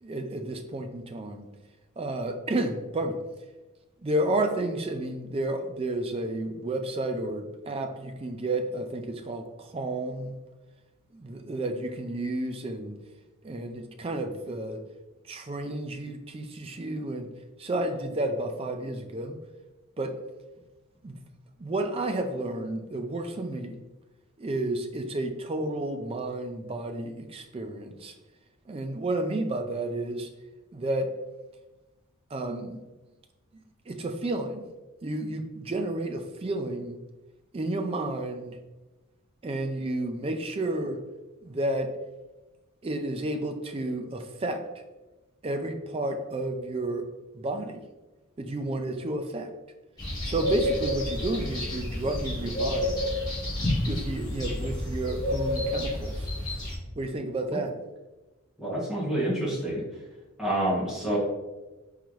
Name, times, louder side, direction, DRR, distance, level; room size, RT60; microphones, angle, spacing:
voice 1, 0.0-1.5 2.0-3.2 4.0-10.4 11.1-13.0 13.4-14.8 15.2-17.3 17.6-19.4 20.0-20.2 21.0-21.2 21.6-23.7 24.4-28.1 28.7-30.3 30.7-31.1 32.3-32.8 33.5-34.7 35.0-37.0 37.5-38.6 39.4-41.0 41.4-41.9 42.8-44.6 45.4-47.1 47.3-47.8 48.4-49.5 50.2-53.0 53.9-56.3 57.0-57.8, right 1 dB, 25° right, 5 dB, 0.4 m, -31 dB
sound 1, 50.0-56.8, left 1 dB, 20° left, 1.4 m, -30 dB
voice 2, 58.6-59.8 60.4-61.2, right 1 dB, 5° right, -8 dB, 1.4 m, -28 dB
4.4 x 3.8 x 3.1 m, 1.1 s
head